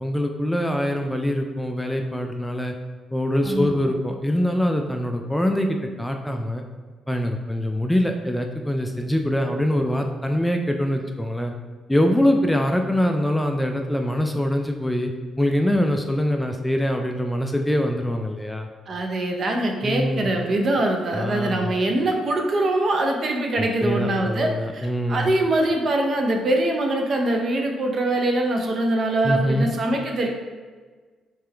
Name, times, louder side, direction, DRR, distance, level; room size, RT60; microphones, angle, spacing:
voice 1, 0.0-2.7 3.1-6.6 7.1-11.5 11.9-15.1 15.4-18.7 19.8-20.4 21.1-21.7 23.6-25.3 29.2-29.7, left 1 dB, 5° left, 4 dB, 0.3 m, -23 dB
voice 2, 3.4-3.9 18.9-30.3, right 1 dB, 50° right, 2 dB, 0.7 m, -23 dB
3.5 x 3.3 x 3.3 m, 1.4 s
cardioid pair, 90°, 0 cm